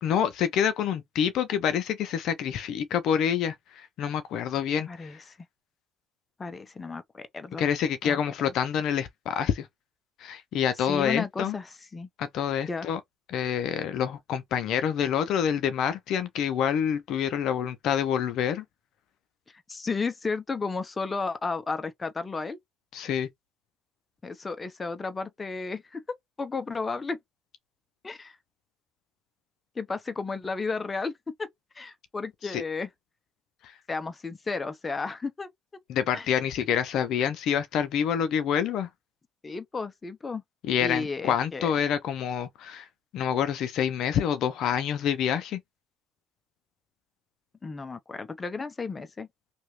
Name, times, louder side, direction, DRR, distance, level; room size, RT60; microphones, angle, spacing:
voice 1, 0.0-5.2 7.6-9.7 10.2-11.6 12.2-13.0 13.3-18.6 22.9-23.3 32.4-32.6 35.9-38.9 40.6-42.9 43.1-45.6, left 8 dB, 70° left, 0.6 m, -27 dB
voice 2, 4.9-5.2 6.4-7.7 8.0-8.2 10.8-12.1 12.7-12.9 19.5-22.6 24.2-26.0 26.4-27.2 28.0-28.4 29.8-31.1 31.4-31.5 31.7-32.9 33.9-35.5 36.1-36.3 39.4-40.4 40.8-41.7 47.6-49.3, left 4 dB, 25° left, 0.7 m, -33 dB
2.8 x 2.5 x 3.1 m
supercardioid pair, 90°, 0 cm